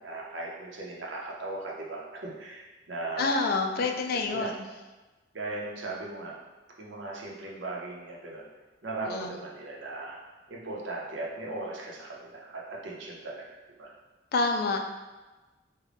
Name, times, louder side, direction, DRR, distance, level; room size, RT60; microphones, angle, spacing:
voice 1, 0.0-3.4 3.8-4.5 5.3-6.4 6.8-8.4 8.8-10.2 10.5-13.4 13.8-13.9, right 2 dB, 75° right, -2 dB, 0.7 m, -38 dB
voice 2, 3.2-4.7 9.0-9.3 14.3-14.8, left 3 dB, 55° left, 4 dB, 0.3 m, -28 dB
3.8 x 2.2 x 3.3 m, 1.2 s
head